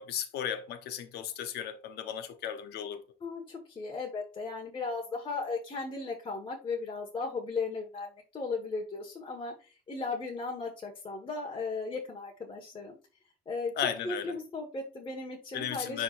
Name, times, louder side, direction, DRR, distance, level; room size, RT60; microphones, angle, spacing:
voice 1, 0.0-3.0 13.8-14.4 15.5-16.0, left 9 dB, 75° left, 1.0 m, -35 dB
voice 2, 3.2-12.9 13.5-16.0, left 3 dB, 30° left, 1.6 m, -36 dB
10.0 x 3.6 x 2.6 m
cardioid pair, 110°, 17 cm